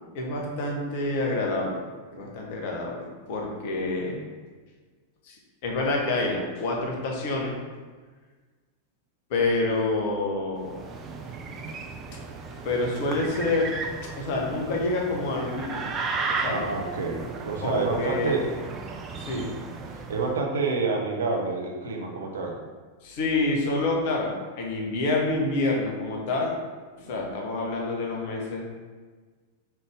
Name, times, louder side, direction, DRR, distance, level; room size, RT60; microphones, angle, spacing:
voice 1, 0.1-1.8 2.1-4.2 5.2-5.4 5.6-7.5 9.3-10.8 12.6-13.7 14.2-15.8 16.3-16.6 17.6-18.4 19.2-19.5 23.0-24.3 24.6-26.5 27.0-28.6, left 2 dB, 50° left, -1 dB, 0.8 m, -27 dB
sound 1, 10.6-20.3, right 4 dB, 25° right, 0.4 m, -35 dB
voice 2, 16.5-18.5 19.3-19.5 20.1-22.6, right 3 dB, 65° right, 1 dB, 0.6 m, -28 dB
3.9 x 3.3 x 3.3 m, 1.4 s
figure-of-eight pair, 90°, 0 cm